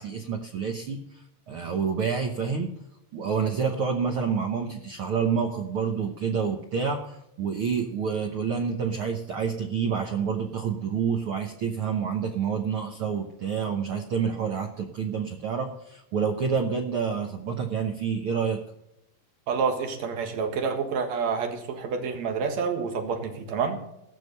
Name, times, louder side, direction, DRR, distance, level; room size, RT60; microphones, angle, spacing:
voice 1, 0.0-2.8 3.1-18.6, right 6 dB, 90° right, 4 dB, 1.1 m, -28 dB
voice 2, 19.5-23.8, right 5 dB, 55° right, 5 dB, 2.7 m, -28 dB
17.5 x 6.8 x 5.4 m, 0.84 s
omnidirectional pair, 4.0 m